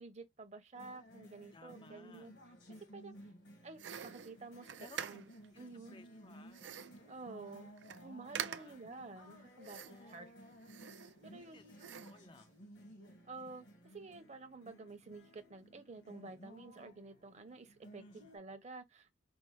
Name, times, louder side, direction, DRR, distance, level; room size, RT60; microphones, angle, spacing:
voice 1, 0.0-2.3 2.7-3.1 3.6-5.2 5.6-6.0 7.1-7.7 8.0-10.3 11.2-11.6 13.3-13.6 13.9-19.1, right 3 dB, 40° right, 0.8 m, -51 dB
sound 1, 0.7-18.4, equal, 70° left, 1.4 m, -57 dB
voice 2, 1.5-2.3 4.8-5.2 5.5-6.7 8.4-8.8 9.7-10.4 11.4-11.7 12.0-12.7 18.0-18.3, left 3 dB, 25° left, 0.4 m, -60 dB
sound 2, 3.8-5.5 6.5-7.0 7.5-7.6 7.8-8.0 8.3-8.9 9.6-10.2 10.6-11.4 11.8-12.2, right 9 dB, 85° right, 0.5 m, -45 dB
5.3 x 2.1 x 3.0 m
head